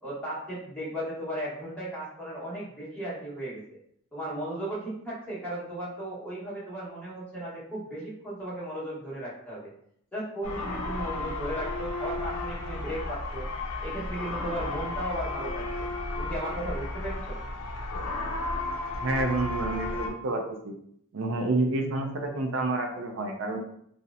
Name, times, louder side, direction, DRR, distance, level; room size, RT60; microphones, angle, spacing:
voice 1, 0.0-3.6 4.1-9.7 10.1-13.5 13.8-15.9 16.2-17.4, right 1 dB, 5° left, -9 dB, 0.8 m, -36 dB
sound 1, 10.4-20.1, left 2 dB, 90° left, 0.4 m, -33 dB
voice 2, 19.0-20.7 21.1-23.6, right 2 dB, 60° right, 3 dB, 0.4 m, -29 dB
2.7 x 2.0 x 2.4 m, 0.69 s
head